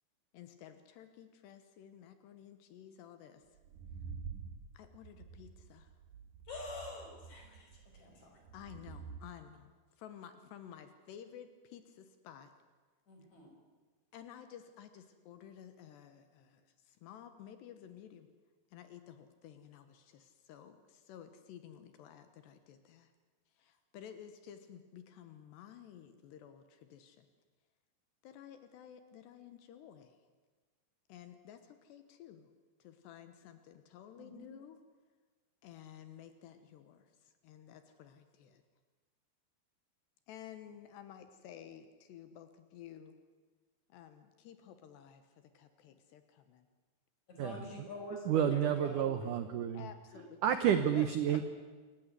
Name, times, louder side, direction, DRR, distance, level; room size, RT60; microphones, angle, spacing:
voice 1, 0.3-3.4 4.7-5.9 8.5-12.5 14.1-18.3 18.7-23.1 23.5-27.3 28.2-30.2 31.1-32.5 32.8-34.8 35.6-38.6 40.3-43.1 43.9-46.7 49.7-50.6 50.9-51.4, left 9 dB, 75° left, 9 dB, 3.3 m, -53 dB
sound 1, 3.6-9.2, right 6 dB, 70° right, 2.1 m, -48 dB
voice 2, 6.5-8.4 13.1-13.5 34.1-34.4 47.3-49.3, left 2 dB, 40° left, 1 dB, 6.5 m, -46 dB
voice 3, 48.3-49.9 50.4-51.4, right 9 dB, 85° right, 10 dB, 1.8 m, -30 dB
28.0 x 15.0 x 9.7 m, 1.4 s
omnidirectional pair, 5.1 m